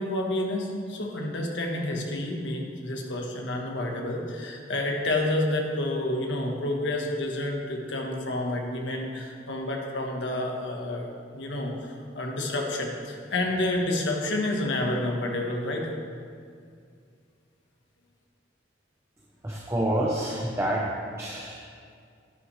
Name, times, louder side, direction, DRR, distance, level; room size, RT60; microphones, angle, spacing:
voice 1, 0.0-11.1 11.3-15.9, left 1 dB, 70° left, 0 dB, 1.4 m, -29 dB
voice 2, 19.4-20.8 21.2-21.6, right 1 dB, 15° right, -2 dB, 0.8 m, -28 dB
11.0 x 10.0 x 3.3 m, 2.3 s
head